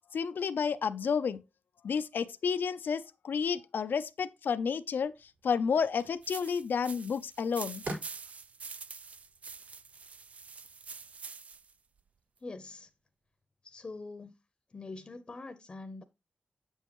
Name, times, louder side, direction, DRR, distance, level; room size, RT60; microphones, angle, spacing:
voice 1, 0.1-1.4 1.8-7.8, left 6 dB, 80° left, 0.5 m, -31 dB
sound 1, 5.0-11.2, right 2 dB, 75° right, 4.7 m, -48 dB
sound 2, 6.2-11.7, right 5 dB, 45° right, 0.3 m, -46 dB
voice 2, 12.4-12.9 13.6-14.3 14.7-16.0, left 3 dB, 30° left, 0.7 m, -44 dB
9.1 x 7.2 x 3.0 m
wide cardioid pair, 170°, 3 cm